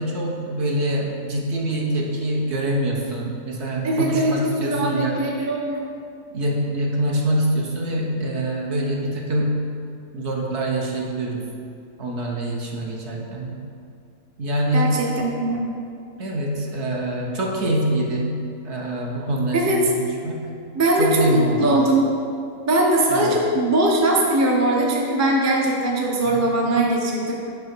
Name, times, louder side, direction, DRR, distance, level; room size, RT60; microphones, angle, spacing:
voice 1, 0.0-5.2 6.3-9.7 10.1-11.5 12.0-13.6 14.4-15.0 16.2-20.4 21.0-21.8 23.1-23.4 26.2-26.5, right 1 dB, 55° right, -1 dB, 1.0 m, -25 dB
voice 2, 3.8-4.3 4.6-5.8 14.7-14.9 15.2-15.6 19.5-19.8 20.7-22.1 22.7-27.4, right 1 dB, 20° right, -2 dB, 0.5 m, -20 dB
5.5 x 5.1 x 6.1 m, 2.5 s
omnidirectional pair, 1.6 m